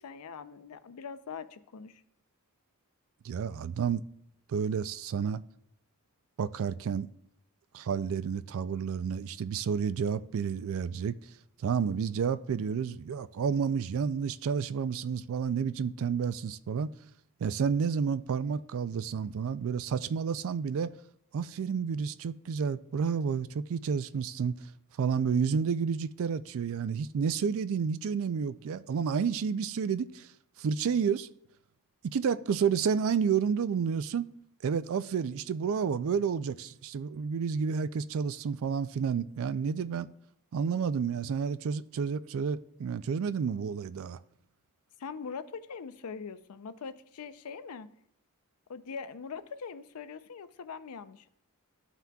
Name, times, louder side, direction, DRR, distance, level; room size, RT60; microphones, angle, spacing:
voice 1, 0.0-2.0 45.0-47.9 48.7-51.3, left 5 dB, 75° left, 0.5 m, -42 dB
voice 2, 3.2-4.0 4.5-5.4 6.4-7.1 7.7-11.1 11.6-16.9 17.4-20.9 21.3-24.6 25.0-30.3 30.6-31.3 32.0-34.3 34.6-40.1 40.5-44.2, right 6 dB, 65° right, 0.4 m, -30 dB
14.0 x 5.8 x 2.3 m
head